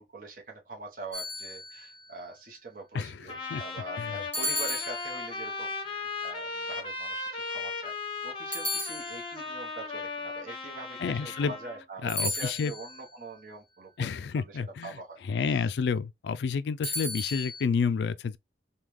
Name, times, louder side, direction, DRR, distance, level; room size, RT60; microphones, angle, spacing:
voice 1, 0.0-14.1 14.3-15.7, right 3 dB, 50° right, 0.9 m, -44 dB
sound 1, 1.1-2.0 4.3-5.6 8.5-9.6 12.1-13.1 16.8-17.6, left 2 dB, 10° left, 1.2 m, -34 dB
voice 2, 2.9-3.6 4.0-4.1 11.0-11.5 12.0-12.7 14.0-15.0 15.2-18.4, left 5 dB, 70° left, 0.3 m, -30 dB
Trumpet, 3.3-11.8, left 3 dB, 25° left, 0.7 m, -37 dB
3.5 x 2.3 x 3.0 m
head